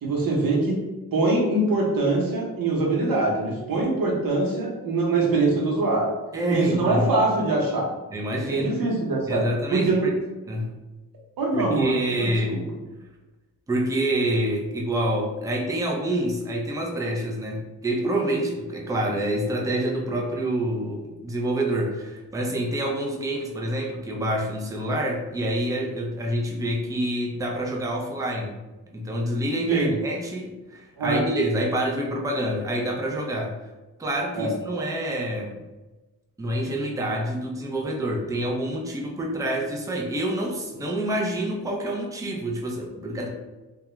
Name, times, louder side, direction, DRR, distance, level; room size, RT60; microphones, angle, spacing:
voice 1, 0.0-0.8 1.1-6.1 6.5-7.9 8.5-9.4 9.7-10.1 11.4-12.3 29.7-29.9 31.0-31.2 34.3-34.5, right 2 dB, 65° right, -1 dB, 0.9 m, -23 dB
voice 2, 6.3-7.1 8.1-8.8 9.3-10.2 10.5-10.7 11.5-12.6 13.7-28.6 28.9-33.6 34.0-35.6 36.4-43.3, right 1 dB, 10° right, -1 dB, 0.4 m, -27 dB
2.3 x 2.3 x 3.0 m, 1.1 s
cardioid pair, 85°, 37 cm